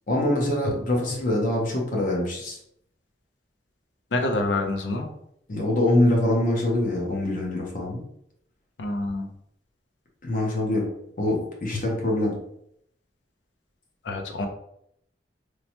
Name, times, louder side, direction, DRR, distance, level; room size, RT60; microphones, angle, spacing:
voice 1, 0.1-2.6 5.5-8.0 10.2-10.9 11.2-12.4, left 1 dB, 50° left, -1 dB, 0.7 m, -24 dB
voice 2, 4.1-5.1 8.8-9.3 14.0-14.5, left 2 dB, 85° left, 4 dB, 0.5 m, -26 dB
3.1 x 2.1 x 2.8 m, 0.72 s
head